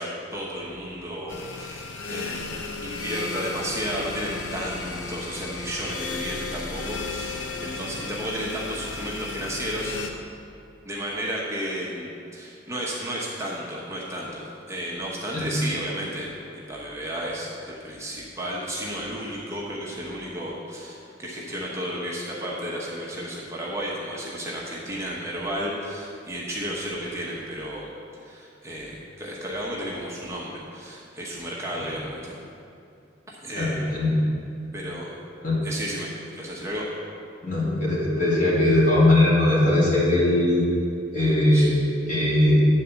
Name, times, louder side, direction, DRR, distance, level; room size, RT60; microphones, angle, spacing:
voice 1, 0.0-9.9 10.9-14.4 14.7-16.3 16.7-27.9 28.2-32.4 33.3-34.0 34.7-35.1 35.6-36.9 41.5-41.7, equal, 15° right, -5 dB, 1.0 m, -33 dB
sound 1, 1.3-10.1, left 3 dB, 70° left, 0.8 m, -34 dB
voice 2, 33.6-34.2 35.4-35.6 37.4-40.7 41.1-41.7 42.1-42.6, left 1 dB, 45° left, -6 dB, 2.3 m, -20 dB
9.3 x 4.1 x 7.0 m, 2.6 s
head